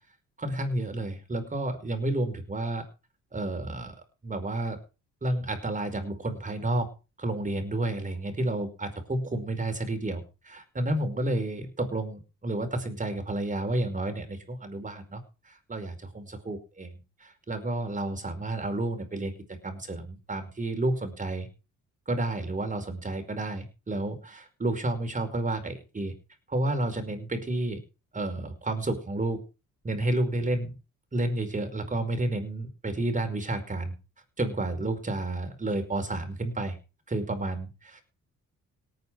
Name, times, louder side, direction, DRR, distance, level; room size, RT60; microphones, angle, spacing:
voice 1, 0.4-2.8 3.3-3.9 4.2-4.8 5.2-6.9 7.2-21.5 22.1-26.1 26.5-27.8 28.1-29.4 29.8-30.8 31.1-33.9 34.4-36.8 37.1-38.0, right 2 dB, 25° right, 7 dB, 5.2 m, -31 dB
18.0 x 9.2 x 4.9 m, 0.32 s
cardioid pair, 90°, 30 cm